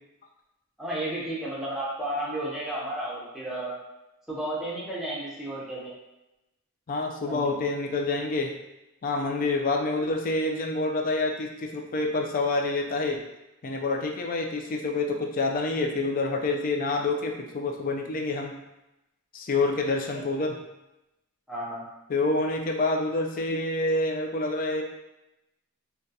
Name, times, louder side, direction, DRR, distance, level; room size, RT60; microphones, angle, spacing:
voice 1, 0.8-3.8 4.3-5.9 7.3-7.6 20.1-20.2 21.5-21.8, right 1 dB, ahead, -6 dB, 0.8 m, -33 dB
voice 2, 6.9-8.5 9.0-13.2 13.6-18.6 19.3-20.6 22.1-24.8, left 3 dB, 40° left, 3 dB, 0.4 m, -27 dB
3.7 x 2.2 x 2.7 m, 0.95 s
head